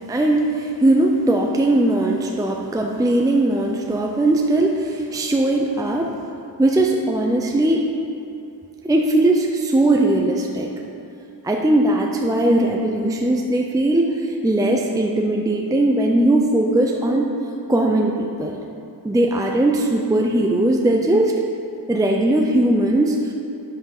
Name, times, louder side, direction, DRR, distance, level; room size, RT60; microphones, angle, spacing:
voice 1, 0.0-6.1 6.6-7.9 8.8-10.7 11.4-17.3 17.7-18.6 19.0-21.4 21.9-23.3, right 1 dB, 10° right, 1 dB, 0.6 m, -19 dB
8.4 x 7.7 x 5.5 m, 2.8 s
cardioid pair, 110°, 41 cm